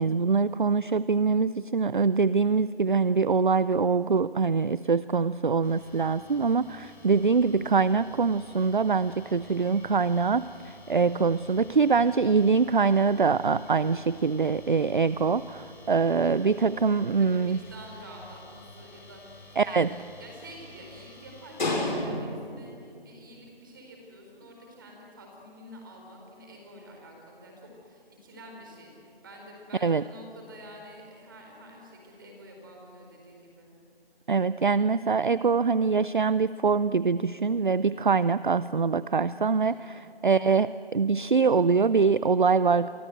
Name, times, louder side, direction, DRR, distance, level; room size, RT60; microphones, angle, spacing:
voice 1, 0.0-17.6 19.6-19.9 29.8-30.0 34.3-42.9, right 5 dB, 55° right, 16 dB, 0.5 m, -24 dB
sound 1, 5.6-22.5, left 1 dB, 50° left, 6.5 m, -41 dB
voice 2, 17.2-33.7 39.6-39.9, equal, 20° right, 1 dB, 4.5 m, -48 dB
29.0 x 23.5 x 8.0 m, 2.5 s
figure-of-eight pair, 170°, 30 cm